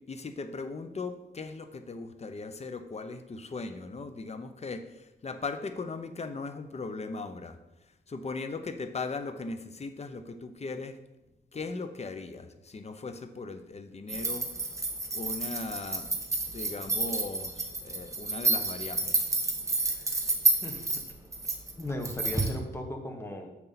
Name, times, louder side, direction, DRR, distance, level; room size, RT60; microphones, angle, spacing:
voice 1, 0.1-7.6 8.1-11.0 11.5-14.5 15.1-16.1 16.5-19.2, left 3 dB, 35° left, 9 dB, 0.8 m, -38 dB
sound 1, 14.1-22.6, right 2 dB, 15° right, 1.1 m, -30 dB
voice 2, 19.9-20.2 20.6-20.9 21.8-23.5, left 1 dB, 15° left, 3 dB, 1.4 m, -37 dB
7.1 x 6.8 x 4.2 m, 0.96 s
cardioid pair, 100°, 19 cm